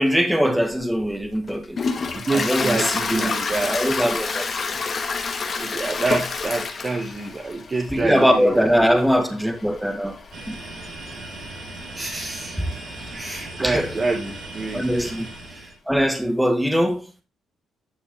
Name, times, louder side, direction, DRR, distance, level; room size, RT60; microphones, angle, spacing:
voice 1, 0.0-1.8 2.3-3.4 3.6-4.8 7.9-10.2 10.5-10.6 12.6-12.7 13.6-13.9 14.7-15.3 15.5-17.2, equal, 5° right, 1.7 m, -22 dB
Toilet flush, 0.7-15.5, left 4 dB, 45° left, 1.8 m, -31 dB
voice 2, 2.1-3.8 5.6-9.0 11.9-12.6 13.1-14.9, right 3 dB, 30° right, 2.1 m, -27 dB
sound 1, 10.3-15.8, right 2 dB, 65° right, 4.7 m, -38 dB
11.5 x 6.3 x 3.6 m
cardioid pair, 90°, 0 cm